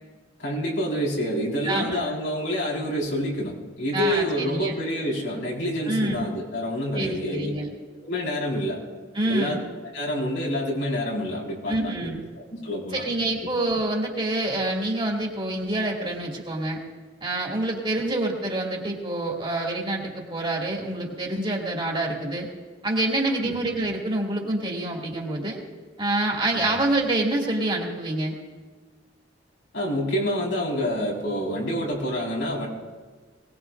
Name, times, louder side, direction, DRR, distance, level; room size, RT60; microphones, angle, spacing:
voice 1, 0.4-7.7 8.0-8.8 9.2-9.6 9.9-13.0 23.4-23.6 26.5-26.7 29.7-32.7, equal, 85° left, -3 dB, 4.8 m, -27 dB
voice 2, 1.6-2.1 3.9-4.7 5.9-6.2 7.0-7.7 9.1-9.6 11.7-12.2 13.0-16.8 17.2-22.5 22.8-25.6 26.0-28.3, right 2 dB, 25° right, -1 dB, 2.4 m, -27 dB
21.5 x 19.0 x 2.6 m, 1.4 s
head